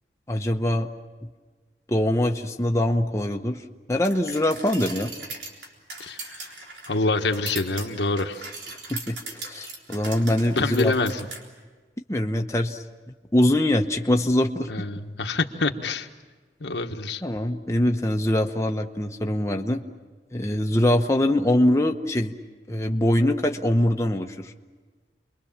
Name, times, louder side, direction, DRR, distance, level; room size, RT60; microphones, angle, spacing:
voice 1, 0.3-0.9 1.9-3.6 3.9-5.1 8.9-10.9 12.1-12.8 13.3-14.7 17.2-19.8 20.3-22.3 22.7-24.5, left 1 dB, 15° left, 2 dB, 0.9 m, -23 dB
sound 1, 4.0-11.4, right 3 dB, 90° right, 3.9 m, -39 dB
voice 2, 6.0-6.5 6.9-8.5 10.5-11.2 14.7-16.1 16.6-17.2, left 3 dB, 85° left, 5 dB, 1.3 m, -26 dB
29.0 x 22.5 x 7.3 m, 1.4 s
head